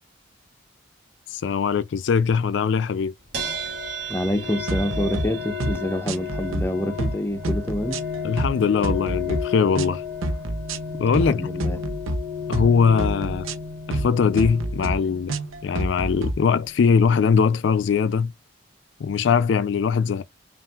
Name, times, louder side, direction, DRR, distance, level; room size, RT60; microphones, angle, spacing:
voice 1, 1.3-3.1 8.2-10.0 11.0-11.4 12.5-13.5 13.9-18.3 19.0-20.2, left 6 dB, 65° left, 0.3 m, -21 dB
sound 1, 3.3-16.9, left 4 dB, 50° right, 1.7 m, -33 dB
voice 2, 4.1-8.0 11.2-11.8, left 1 dB, 10° left, 0.5 m, -27 dB
sound 2, 4.7-5.3 5.6-5.8 6.1-6.6 7.0-7.2 7.4-8.6 8.8-9.4 9.8-9.9 10.2-10.8 11.1-11.3 11.6-12.2 12.5-12.7 13.0-13.5 13.9-14.1 14.4-14.9 15.3-16.3, right 1 dB, 90° right, 0.7 m, -27 dB
5.6 x 2.5 x 2.3 m
head